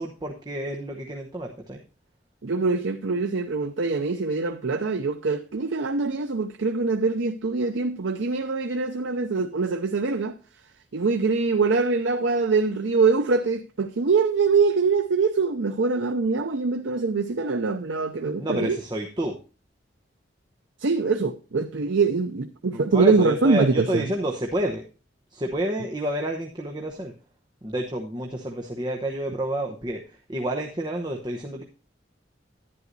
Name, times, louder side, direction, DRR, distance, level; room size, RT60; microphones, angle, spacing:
voice 1, 0.0-1.8 18.4-19.3 22.7-24.8 25.3-27.1 27.6-31.6, right 1 dB, 25° right, 0.9 m, -29 dB
voice 2, 2.4-10.4 10.9-18.8 20.8-24.1, right 4 dB, 90° right, 0.7 m, -23 dB
11.0 x 10.5 x 2.6 m
head